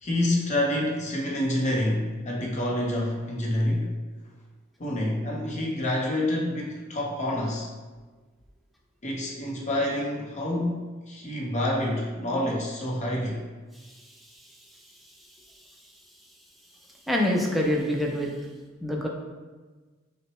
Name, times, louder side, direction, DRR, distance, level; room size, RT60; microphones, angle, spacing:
voice 1, 0.0-3.9 4.8-7.7 9.0-13.4, left 1 dB, 35° left, -2 dB, 0.7 m, -27 dB
voice 2, 17.1-18.3 18.8-19.1, left 1 dB, ahead, -2 dB, 0.4 m, -25 dB
5.7 x 2.2 x 3.0 m, 1.3 s
head